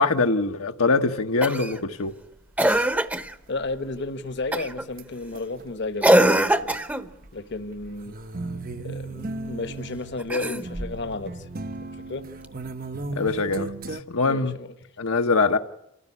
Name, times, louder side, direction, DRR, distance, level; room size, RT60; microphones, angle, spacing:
voice 1, 0.0-2.1 13.1-14.5 15.0-15.6, left 3 dB, 70° left, 1.1 m, -23 dB
Cough, 1.4-1.8 2.6-3.3 4.5-4.8 6.0-7.1 10.2-11.0 12.4-12.5, right 1 dB, 5° right, 0.8 m, -22 dB
sound 1, 2.7-3.2 3.6-4.0 5.0-5.1 5.3-5.6 6.1-7.3 7.5-14.0, right 3 dB, 40° right, 0.8 m, -36 dB
voice 2, 3.5-6.7 7.3-8.1 8.8-11.5 12.1-12.2 14.2-14.7, left 3 dB, 50° left, 1.2 m, -33 dB
28.5 x 15.5 x 9.9 m
head